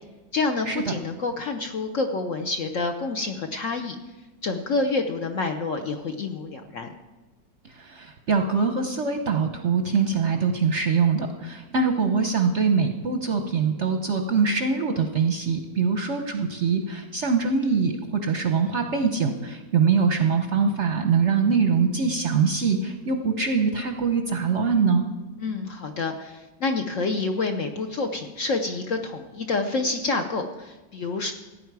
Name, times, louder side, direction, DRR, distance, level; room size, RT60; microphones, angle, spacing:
voice 1, 0.3-4.0 4.4-6.9 25.4-31.3, left 3 dB, 60° left, 5 dB, 0.9 m, -28 dB
voice 2, 7.8-25.1, right 5 dB, 55° right, 6 dB, 0.8 m, -23 dB
15.5 x 8.9 x 4.7 m, 1.2 s
omnidirectional pair, 1.9 m